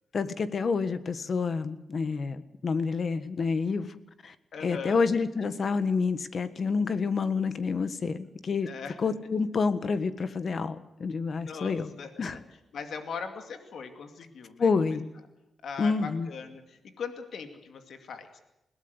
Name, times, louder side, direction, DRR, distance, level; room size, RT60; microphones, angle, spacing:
voice 1, 0.1-4.3 4.6-8.7 9.0-11.9 12.2-12.4 14.6-15.1 15.8-16.3, left 4 dB, 50° left, 13 dB, 1.6 m, -28 dB
voice 2, 4.5-5.0 8.7-9.0 11.3-12.4 12.7-14.7 15.6-18.4, left 5 dB, 75° left, 7 dB, 2.5 m, -40 dB
21.0 x 18.0 x 8.2 m, 0.88 s
cardioid pair, 90°, 0 cm